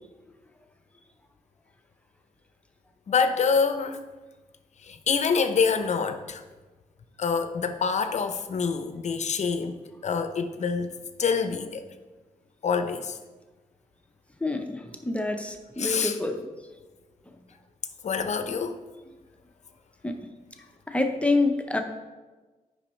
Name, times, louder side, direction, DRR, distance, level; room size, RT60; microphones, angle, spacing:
voice 1, 3.1-4.0 4.8-6.4 7.2-10.9 11.2-11.8 12.6-13.2 15.8-16.2 18.0-18.8, left 5 dB, 55° left, 8 dB, 0.6 m, -26 dB
voice 2, 14.4-16.4 20.0-20.2 20.9-21.8, left 2 dB, 10° left, 4 dB, 0.7 m, -27 dB
8.7 x 5.4 x 3.1 m, 1.2 s
cardioid pair, 70°, 14 cm